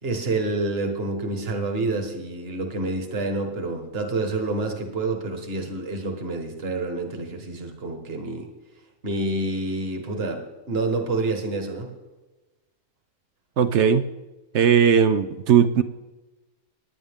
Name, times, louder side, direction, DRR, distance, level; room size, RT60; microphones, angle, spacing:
voice 1, 0.0-8.5 9.0-11.9, right 2 dB, 40° right, 4 dB, 1.7 m, -28 dB
voice 2, 13.6-14.1 14.5-15.8, right 7 dB, 65° right, 12 dB, 0.7 m, -18 dB
18.5 x 10.0 x 3.6 m, 1.1 s
omnidirectional pair, 1.7 m